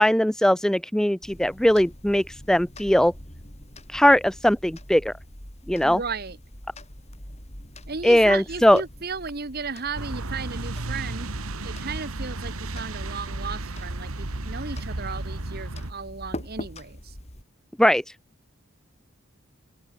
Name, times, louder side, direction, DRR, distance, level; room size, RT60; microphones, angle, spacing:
voice 1, 0.0-3.1 3.9-5.1 5.7-6.0 8.0-8.8 17.8-18.0, equal, 5° left, 0.3 m, -20 dB
sound 1, 1.2-17.4, left 1 dB, 30° left, 6.5 m, -43 dB
voice 2, 5.8-6.4 7.9-11.3 11.6-17.1, right 4 dB, 45° right, 1.3 m, -35 dB
sound 2, 10.0-15.9, right 2 dB, 80° right, 1.8 m, -33 dB
open air
head